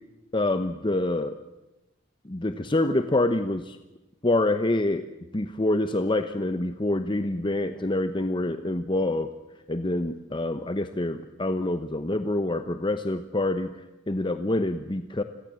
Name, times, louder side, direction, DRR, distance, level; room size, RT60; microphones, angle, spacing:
voice 1, 0.3-1.4 2.2-3.8 4.2-5.0 5.3-9.3 9.7-13.7 14.1-15.2, left 2 dB, 25° left, 9 dB, 0.9 m, -26 dB
28.0 x 21.5 x 7.7 m, 1.0 s
head